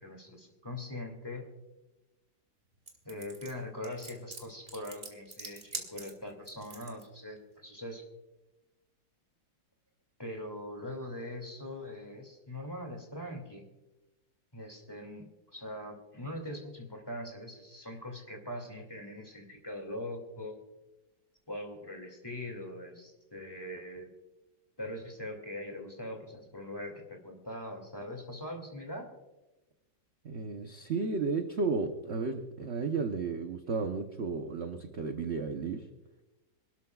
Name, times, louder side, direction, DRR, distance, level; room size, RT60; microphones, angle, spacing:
voice 1, 0.0-1.4 3.0-8.0 10.2-13.6 14.5-20.6 21.5-24.1 24.8-29.1, left 1 dB, 15° left, 2 dB, 2.4 m, -42 dB
sound 1, 2.9-7.0, right 2 dB, 30° right, 2.0 m, -43 dB
voice 2, 30.2-35.9, right 4 dB, 45° right, 5 dB, 1.0 m, -33 dB
27.0 x 12.5 x 2.4 m, 1.0 s
omnidirectional pair, 2.0 m